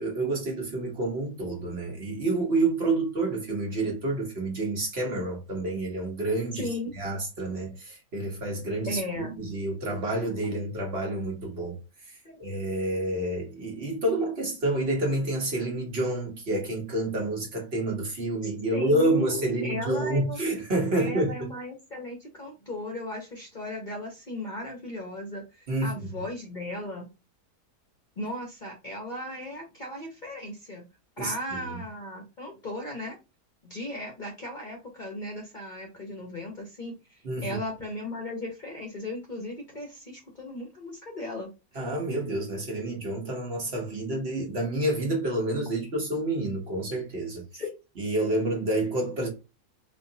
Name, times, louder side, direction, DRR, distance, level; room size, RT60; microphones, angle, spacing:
voice 1, 0.0-6.7 7.0-11.8 12.1-21.3 25.7-26.1 31.2-31.8 37.2-37.6 41.7-47.4 48.0-49.3, right 2 dB, 45° right, 1.2 m, -29 dB
voice 2, 6.6-6.9 8.9-9.3 12.2-12.4 18.7-20.4 20.9-27.1 28.2-30.9 31.2-33.2 33.6-41.5 47.5-47.7, left 1 dB, 40° left, 0.8 m, -36 dB
4.2 x 2.5 x 2.7 m
omnidirectional pair, 1.6 m